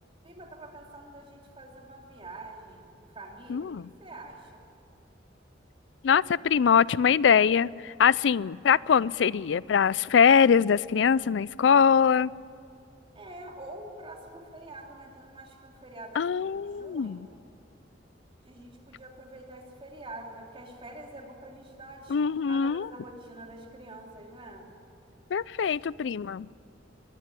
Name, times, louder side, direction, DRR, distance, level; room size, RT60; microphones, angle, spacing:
voice 1, 0.2-3.7 4.0-4.7 13.1-17.4 18.4-22.2 22.5-24.7, right 2 dB, 30° right, 1 dB, 3.1 m, -46 dB
voice 2, 3.5-3.9 6.0-12.3 16.2-17.2 22.1-22.9 25.3-26.5, left 7 dB, 70° left, 22 dB, 0.4 m, -23 dB
22.0 x 14.5 x 9.9 m, 2.6 s
head